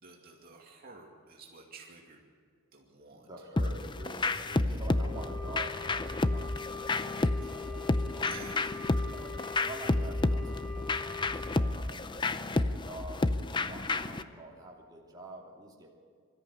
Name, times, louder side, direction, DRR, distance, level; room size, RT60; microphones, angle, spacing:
voice 1, 0.0-2.2 2.7-3.3 4.2-4.4 8.2-8.8, right 4 dB, 45° right, -1 dB, 2.5 m, -51 dB
voice 2, 3.1-8.6 9.0-13.2 13.6-15.9, right 2 dB, 20° right, -3 dB, 2.9 m, -47 dB
sound 1, 3.6-14.2, left 2 dB, 25° left, 0.6 m, -31 dB
Wind instrument woodwind instrument, 4.9-11.6, left 5 dB, 5° left, 5.0 m, -43 dB
23.0 x 13.5 x 8.4 m, 2.1 s
head